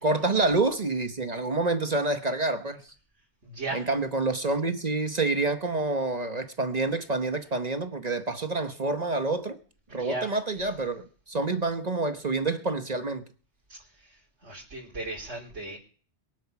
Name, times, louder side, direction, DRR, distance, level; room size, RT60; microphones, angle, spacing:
voice 1, 0.0-2.9 3.7-9.6 9.9-13.2, right 3 dB, 35° right, 1.1 m, -28 dB
voice 2, 3.4-3.8 9.9-10.3 14.4-15.8, right 2 dB, 85° right, 3.8 m, -35 dB
22.5 x 7.9 x 5.9 m
omnidirectional pair, 1.2 m